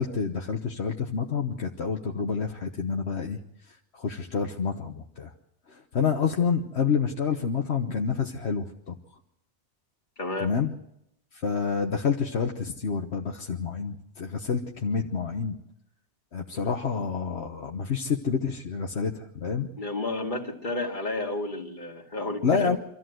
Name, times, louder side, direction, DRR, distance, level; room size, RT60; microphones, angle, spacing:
voice 1, 0.0-3.4 3.9-5.3 5.7-9.0 10.4-10.7 11.4-15.6 16.3-19.7 22.4-22.8, left 5 dB, 75° left, 3 dB, 1.4 m, -28 dB
voice 2, 10.2-10.6 19.8-22.7, left 2 dB, 45° left, 1 dB, 2.4 m, -31 dB
25.5 x 14.0 x 7.8 m, 0.79 s
omnidirectional pair, 1.1 m